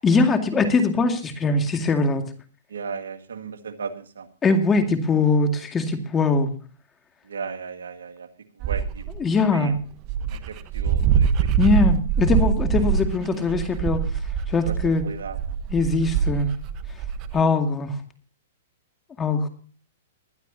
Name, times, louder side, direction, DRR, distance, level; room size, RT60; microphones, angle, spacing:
voice 1, 0.0-2.3 4.4-6.5 9.2-9.8 11.6-14.1 14.5-15.1 15.7-16.5 17.3-18.0 19.2-19.5, left 3 dB, 20° left, 6 dB, 2.1 m, -21 dB
voice 2, 2.7-4.3 7.3-8.3 8.6-9.0 9.5-9.8 10.3-11.7 14.6-14.7 15.0-15.6, right 5 dB, 85° right, 8 dB, 1.7 m, -35 dB
Dog, 8.6-9.2 9.8-9.9 10.0-17.4, right 7 dB, 35° right, 1.0 m, -24 dB
21.0 x 11.5 x 2.7 m, 0.39 s
hypercardioid pair, 130°, 0 cm